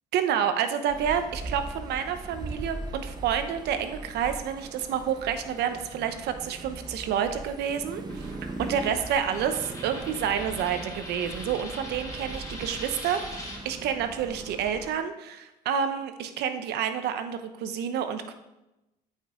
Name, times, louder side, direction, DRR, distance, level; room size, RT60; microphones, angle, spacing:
voice 1, 0.1-8.3 8.6-18.3, right 8 dB, 75° right, 9 dB, 0.8 m, -29 dB
sound 1, 0.9-14.9, right 2 dB, 25° right, 1.0 m, -40 dB
Coin (dropping), 8.1-13.6, left 1 dB, 20° left, 2.8 m, -42 dB
13.5 x 5.4 x 3.7 m, 0.98 s
cardioid pair, 110°, 17 cm